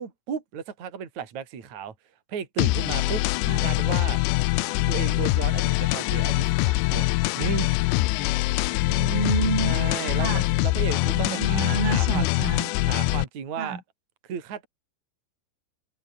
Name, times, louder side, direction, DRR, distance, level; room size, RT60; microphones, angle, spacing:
voice 1, 0.0-1.9 2.3-3.2 3.6-4.2 4.9-7.1 7.3-7.8 9.6-12.2 12.8-13.8 14.2-14.7, right 7 dB, 40° right, 4.3 m, -34 dB
sound 1, 2.6-13.2, left 20 dB, 80° left, 2.6 m, -24 dB
voice 2, 8.7-9.7 10.2-10.5 11.0-12.7 13.6-13.8, right 5 dB, 85° right, 9.9 m, -30 dB
omnidirectional pair, 5.7 m